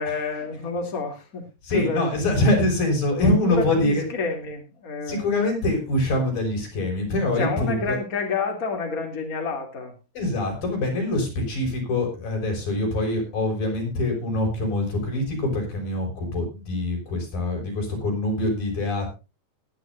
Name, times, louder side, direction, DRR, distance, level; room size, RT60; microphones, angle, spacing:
voice 1, 0.0-1.5 1.7-2.0 3.2-5.2 7.4-9.9, left 4 dB, 25° left, 2 dB, 3.2 m, -29 dB
voice 2, 1.6-4.1 5.1-8.0 10.1-19.1, left 2 dB, 90° left, 1 dB, 7.9 m, -24 dB
19.5 x 11.0 x 2.7 m, 0.29 s
omnidirectional pair, 3.9 m